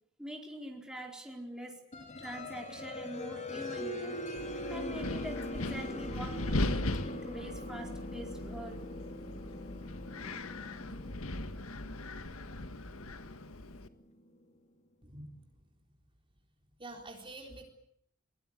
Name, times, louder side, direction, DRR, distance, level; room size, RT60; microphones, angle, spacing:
voice 1, 0.2-1.8 2.2-8.9, right 1 dB, 5° right, 1 dB, 4.5 m, -44 dB
sound 1, 1.9-14.4, left 1 dB, 35° left, 3.9 m, -42 dB
Wind, 4.4-13.9, left 1 dB, 80° left, 1.8 m, -39 dB
voice 2, 15.0-15.3 16.8-17.7, right 2 dB, 25° right, 2 dB, 4.0 m, -46 dB
23.5 x 23.0 x 8.7 m, 0.68 s
head